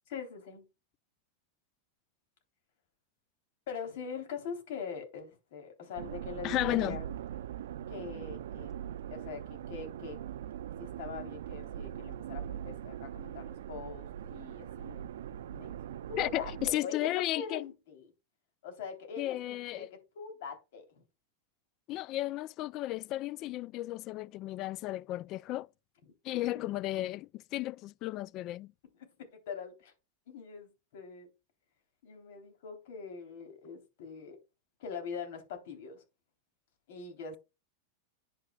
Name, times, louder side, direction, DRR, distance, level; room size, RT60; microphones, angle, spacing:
voice 1, 0.1-0.6 3.7-7.1 7.9-8.8 9.1-10.2 10.8-15.0 15.5-18.1 18.6-21.0 29.0-29.9 30.3-31.3 32.0-34.4 34.8-36.0 36.9-37.4, left 6 dB, 65° left, 3.4 m, -43 dB
sound 1, 6.0-16.8, right 10 dB, 80° right, 0.4 m, -41 dB
voice 2, 6.4-7.0 16.2-17.6 19.2-19.9 21.9-25.7 26.2-28.7, left 16 dB, 40° left, 0.3 m, -34 dB
10.0 x 5.8 x 2.3 m
supercardioid pair, 135°, 0 cm